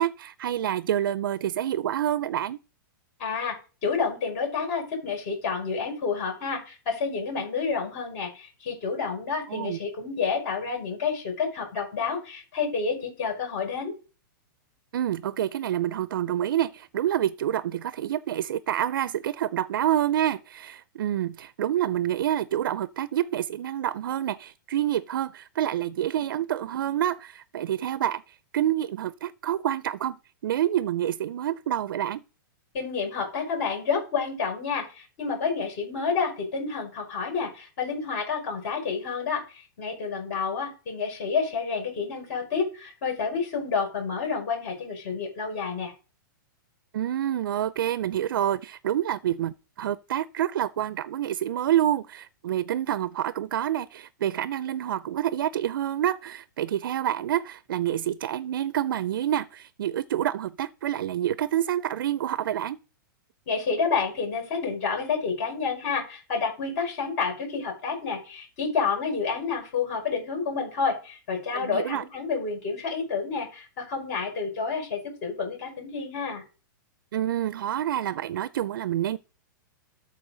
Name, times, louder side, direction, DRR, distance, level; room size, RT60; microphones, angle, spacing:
voice 1, 0.0-2.6 9.5-9.8 14.9-30.2 30.4-32.2 46.9-62.8 71.5-72.0 77.1-79.2, right 11 dB, 75° right, 0.4 m, -27 dB
voice 2, 3.2-13.9 32.7-45.9 63.5-76.4, left 5 dB, 45° left, 5.9 m, -29 dB
13.0 x 4.5 x 3.9 m
hypercardioid pair, 155°, 11 cm